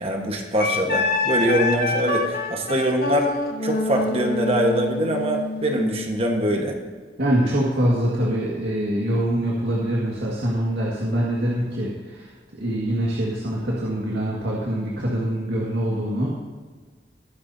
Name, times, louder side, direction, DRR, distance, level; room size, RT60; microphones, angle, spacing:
voice 1, 0.0-3.3 3.6-6.7, equal, 35° right, 2 dB, 1.4 m, -23 dB
Wind instrument woodwind instrument, 0.6-6.0, left 2 dB, 55° left, 1.1 m, -26 dB
voice 2, 7.2-16.3, right 1 dB, 80° right, -5 dB, 1.9 m, -24 dB
20.5 x 9.7 x 2.8 m, 1.4 s
head